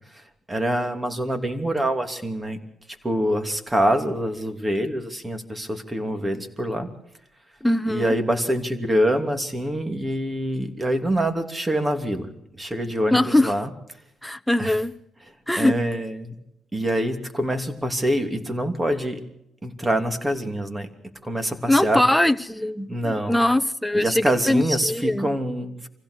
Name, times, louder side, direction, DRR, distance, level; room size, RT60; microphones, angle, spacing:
voice 1, 0.5-2.6 3.0-6.9 7.9-12.3 12.5-13.7 14.6-14.8 15.6-16.3 16.7-19.2 19.6-20.9 21.2-22.0 22.9-23.4 23.9-25.9, right 1 dB, 15° right, 2.9 m, -25 dB
voice 2, 7.6-8.1 13.1-13.5 14.2-14.9 15.5-15.8 21.7-25.4, left 1 dB, 5° left, 1.0 m, -21 dB
25.0 x 16.0 x 6.5 m
cardioid pair, 90°, 0 cm